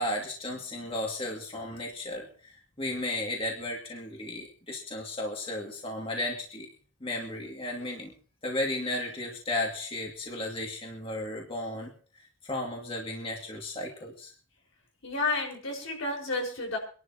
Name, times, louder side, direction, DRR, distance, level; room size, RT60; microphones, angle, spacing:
voice 1, 0.0-6.7 7.0-8.1 8.4-11.9 12.4-14.3, left 1 dB, 30° left, -1 dB, 2.4 m, -34 dB
voice 2, 15.0-16.8, left 3 dB, 85° left, -1 dB, 5.1 m, -31 dB
26.0 x 11.5 x 3.0 m, 0.40 s
head